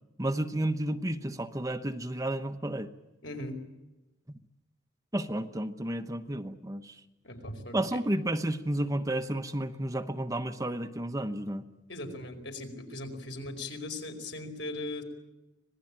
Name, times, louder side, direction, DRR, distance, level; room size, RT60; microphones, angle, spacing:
voice 1, 0.2-2.9 5.1-6.9 7.7-11.6, right 1 dB, 20° right, 8 dB, 1.0 m, -32 dB
voice 2, 3.2-3.6 7.2-8.0 11.9-15.0, left 2 dB, 75° left, 5 dB, 4.9 m, -39 dB
26.0 x 19.0 x 8.9 m, 1.0 s
head